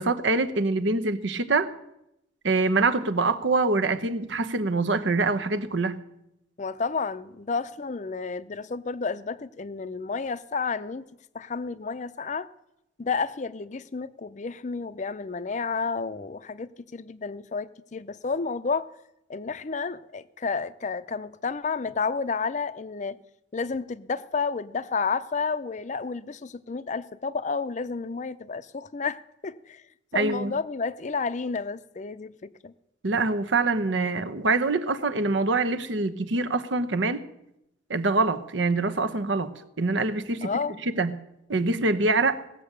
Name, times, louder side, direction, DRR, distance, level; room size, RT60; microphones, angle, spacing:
voice 1, 0.0-1.7 2.4-6.0 30.1-30.5 33.0-37.2 37.9-39.5 39.8-40.5 40.9-41.1 41.5-42.4, right 3 dB, 75° right, 0.9 m, -24 dB
voice 2, 6.6-11.0 11.3-12.5 13.0-18.9 19.3-23.2 23.5-29.8 30.1-32.7 40.4-40.7, left 4 dB, 40° left, 0.5 m, -31 dB
17.5 x 7.5 x 6.7 m
head